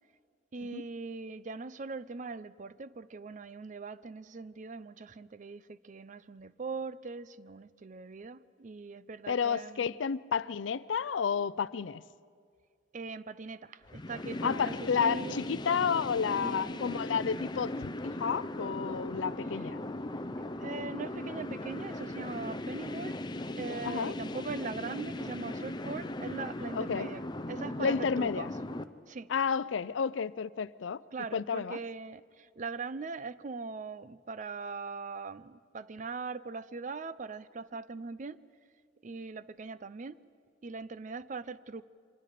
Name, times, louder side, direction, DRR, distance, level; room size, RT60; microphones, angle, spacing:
voice 1, 0.5-9.9 12.9-15.4 16.4-16.9 20.6-23.2 23.6-27.2 27.5-28.5 29.1-29.3 31.1-38.4 39.0-40.2 40.6-41.8, right 4 dB, 45° right, 0.5 m, -41 dB
voice 2, 9.3-12.0 14.4-17.7 18.0-19.8 23.8-24.1 26.7-27.1 27.8-28.5 29.3-31.0 31.3-31.8, left 6 dB, 90° left, 0.5 m, -31 dB
sound 1, 13.9-28.8, left 1 dB, 25° left, 0.7 m, -38 dB
28.0 x 25.0 x 5.0 m
head